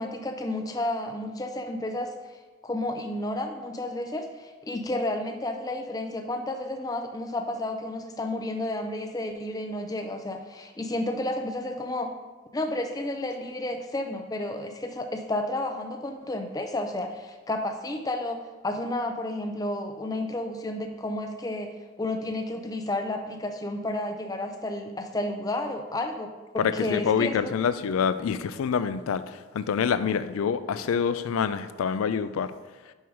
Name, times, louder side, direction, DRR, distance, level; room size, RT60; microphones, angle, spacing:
voice 1, 0.0-2.1 2.6-12.1 12.5-21.7 22.0-27.5, left 1 dB, 20° left, 5 dB, 0.4 m, -31 dB
voice 2, 26.6-32.5, left 7 dB, 90° left, 13 dB, 0.4 m, -26 dB
5.5 x 4.6 x 4.6 m, 1.3 s
head